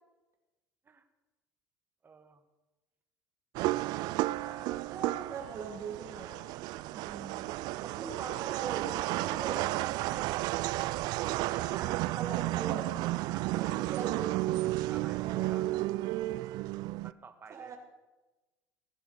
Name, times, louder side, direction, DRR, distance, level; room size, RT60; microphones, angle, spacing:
voice 1, 2.0-2.4 4.4-5.1 9.8-10.4 11.4-11.9 13.1-14.1 14.9-15.8 16.7-17.8, right 5 dB, 30° right, 8 dB, 1.7 m, -53 dB
sound 1, 3.5-17.1, right 18 dB, 65° right, 0.4 m, -32 dB
voice 2, 4.9-6.4 6.9-7.4 7.8-9.6 11.2-12.9 13.5-14.8 15.2-15.9 17.5-17.8, right 5 dB, 45° right, 2 dB, 2.9 m, -41 dB
19.5 x 7.9 x 6.6 m, 1.1 s
supercardioid pair, 90°, 8 cm